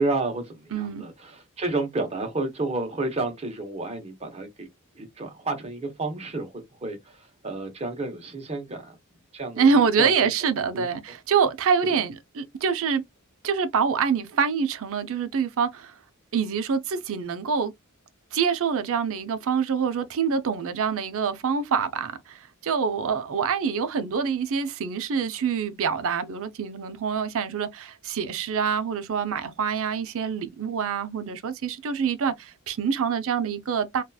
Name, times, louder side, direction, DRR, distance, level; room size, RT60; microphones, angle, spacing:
voice 1, 0.0-4.7 4.9-9.0 9.3-10.1 10.7-10.9 11.8-12.0, right 2 dB, 30° right, 0.8 m, -31 dB
voice 2, 0.7-1.0 9.6-13.0 13.4-15.9 16.3-17.7 18.3-34.0, right 6 dB, 65° right, 0.5 m, -25 dB
2.8 x 2.3 x 2.3 m
head